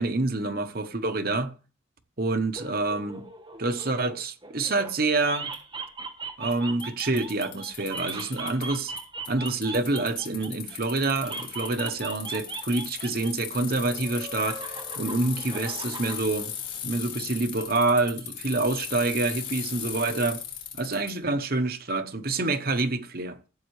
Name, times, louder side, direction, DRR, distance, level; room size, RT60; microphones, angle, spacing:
voice 1, 0.0-1.5 2.2-3.2 3.6-5.5 6.4-8.9 9.3-16.5 16.8-20.4 20.8-23.4, right 2 dB, 50° right, 0.9 m, -27 dB
sound 1, 2.5-4.9 5.2-10.8 11.2-13.3 13.6-16.2, right 4 dB, 25° right, 1.2 m, -39 dB
Bicycle, 5.5-5.6 6.5-6.6 6.8-9.0 9.2-21.1, left 9 dB, 65° left, 4.2 m, -37 dB
14.5 x 7.9 x 3.2 m
head